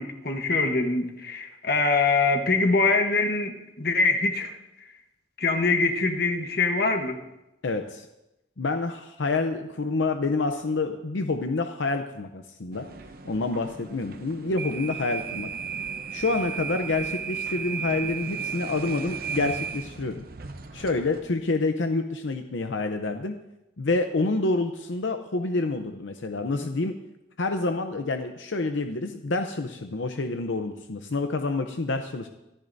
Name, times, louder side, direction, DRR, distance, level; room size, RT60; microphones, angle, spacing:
voice 1, 0.0-4.6 5.4-7.2, left 3 dB, 50° left, 5 dB, 1.2 m, -24 dB
voice 2, 7.6-8.1 8.6-12.9 13.2-15.5 16.1-20.2 20.7-23.4 23.8-26.9 27.4-32.3, left 3 dB, 75° left, 6 dB, 0.7 m, -28 dB
sound 1, 12.7-21.3, right 6 dB, 50° right, 0.8 m, -35 dB
24.5 x 14.0 x 2.7 m, 0.94 s
head